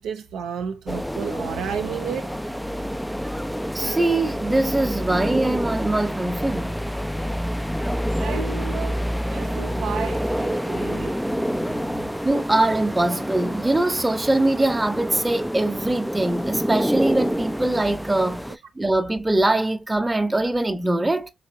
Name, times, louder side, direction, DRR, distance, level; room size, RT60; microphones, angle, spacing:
voice 1, 0.0-2.3 8.2-11.2, right 7 dB, 85° right, 0.5 m, -32 dB
sound 1, 0.9-18.6, equal, ahead, 0.3 m, -28 dB
voice 2, 3.7-6.8 12.2-21.3, right 2 dB, 20° right, 0.7 m, -22 dB
4.1 x 2.7 x 2.6 m
supercardioid pair, 45°, 0 cm